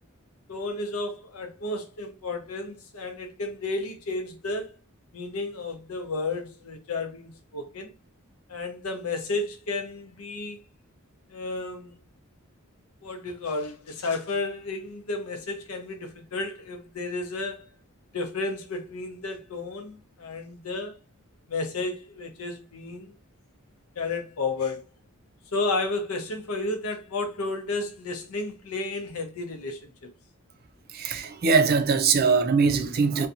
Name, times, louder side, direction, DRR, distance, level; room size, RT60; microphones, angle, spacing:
voice 1, 0.5-4.7 5.1-7.9 8.5-10.6 11.3-12.0 13.0-17.6 18.1-21.0 21.5-23.1 24.0-24.8 25.5-29.9, left 3 dB, 90° left, 0.7 m, -32 dB
voice 2, 30.9-33.3, right 5 dB, 45° right, 0.4 m, -22 dB
2.7 x 2.2 x 2.5 m
head